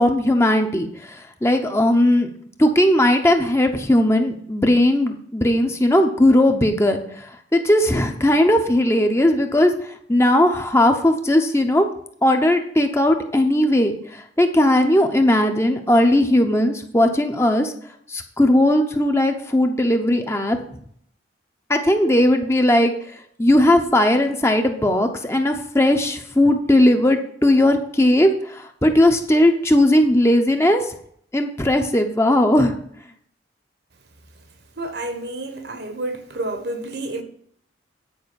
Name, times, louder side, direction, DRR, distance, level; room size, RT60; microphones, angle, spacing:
voice 1, 0.0-2.3 2.6-11.9 12.2-17.7 18.1-20.6 21.7-31.0 31.3-32.7, left 1 dB, 15° left, 0.8 m, -18 dB
voice 2, 34.8-37.2, right 2 dB, 60° right, 1.2 m, -29 dB
9.5 x 5.0 x 6.9 m
head